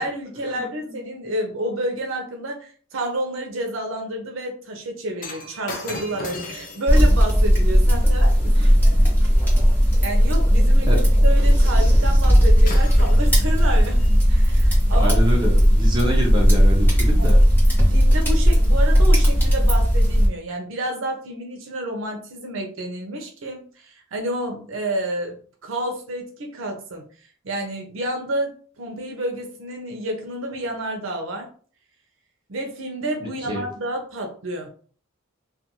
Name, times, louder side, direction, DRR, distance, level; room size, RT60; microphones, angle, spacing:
voice 1, 0.0-9.1 10.0-15.1 17.2-17.3 17.9-27.0 27.4-31.5 32.5-34.7, right 1 dB, 65° right, 2 dB, 0.6 m, -30 dB
Shatter, 5.2-9.6 12.2-12.4 12.7-14.2 14.9-15.0, left 2 dB, 40° left, 0.5 m, -38 dB
sound 1, 6.9-20.3, equal, 10° left, 0.9 m, -16 dB
voice 2, 14.9-17.4 33.4-33.7, equal, 20° right, -2 dB, 0.5 m, -26 dB
2.4 x 2.2 x 2.8 m, 0.42 s
head